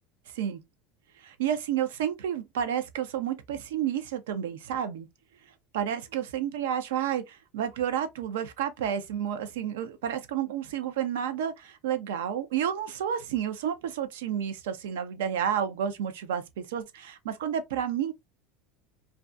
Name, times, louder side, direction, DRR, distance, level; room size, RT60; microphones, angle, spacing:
voice 1, 1.2-5.1 5.7-18.1, right 9 dB, 90° right, 0.5 m, -30 dB
2.3 x 2.3 x 2.4 m
supercardioid pair, 115°, 0 cm